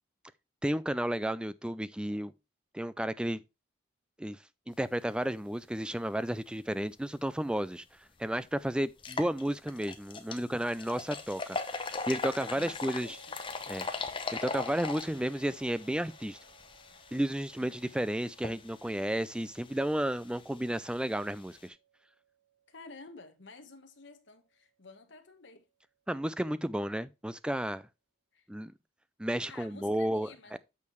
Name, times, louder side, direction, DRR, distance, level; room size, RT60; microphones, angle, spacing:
voice 1, 0.6-2.3 2.7-3.4 4.2-4.4 4.7-7.8 8.2-13.2 13.7-13.9 14.3-16.4 17.1-21.8 26.1-27.8 28.5-28.7 29.2-30.6, right 1 dB, 5° right, 0.3 m, -32 dB
sound 1, 7.6-7.7 8.2-8.3 8.9-21.7, left 4 dB, 25° left, 0.8 m, -41 dB
voice 2, 12.5-13.4 22.7-25.7 28.3-28.5 29.5-30.6, left 3 dB, 60° left, 1.4 m, -51 dB
sound 2, 12.8-25.9, right 10 dB, 30° right, 3.5 m, -64 dB
8.5 x 6.6 x 3.1 m
head